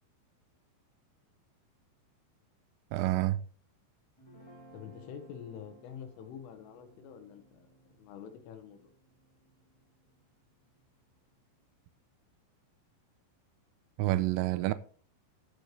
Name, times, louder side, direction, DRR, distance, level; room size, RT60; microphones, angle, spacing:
voice 1, 2.9-3.4 14.0-14.7, right 17 dB, 90° right, 3.3 m, -28 dB
Guitar, 4.2-10.5, right 1 dB, 10° left, 2.1 m, -59 dB
voice 2, 4.7-8.9, left 8 dB, 80° left, 3.8 m, -47 dB
15.5 x 6.7 x 3.2 m
omnidirectional pair, 5.7 m